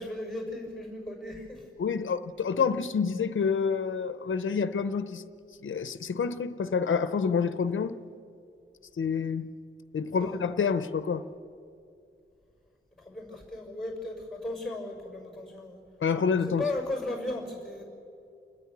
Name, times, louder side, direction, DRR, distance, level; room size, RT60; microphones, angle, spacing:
voice 1, 0.0-1.7 10.1-10.4 13.0-15.8 16.5-17.8, left 2 dB, ahead, 6.1 m, -36 dB
voice 2, 1.8-5.2 5.6-8.0 9.0-9.5 9.9-11.2 16.0-16.6, left 6 dB, 70° left, 0.8 m, -28 dB
29.5 x 10.0 x 9.7 m
wide cardioid pair, 145°, 21 cm